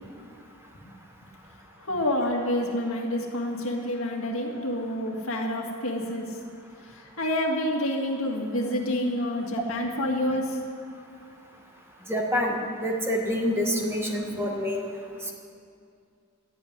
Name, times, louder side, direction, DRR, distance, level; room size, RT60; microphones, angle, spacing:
voice 1, 1.8-6.4 6.9-10.6 14.3-14.4, left 1 dB, 65° left, 0 dB, 2.1 m, -28 dB
voice 2, 12.1-14.8, left 1 dB, 10° right, 0 dB, 1.6 m, -27 dB
13.0 x 8.7 x 9.8 m, 2.4 s
head